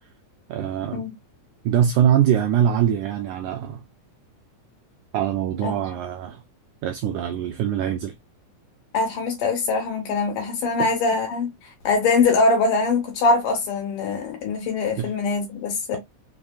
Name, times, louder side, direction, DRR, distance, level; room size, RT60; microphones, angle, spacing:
voice 1, 0.5-1.1 1.6-3.8 5.1-6.4 6.8-8.1 10.8-10.9 15.0-15.1, right 9 dB, 85° right, 1.7 m, -23 dB
voice 2, 8.9-11.5 11.8-16.0, left 3 dB, 70° left, 3.0 m, -22 dB
6.2 x 2.5 x 2.3 m
omnidirectional pair, 4.0 m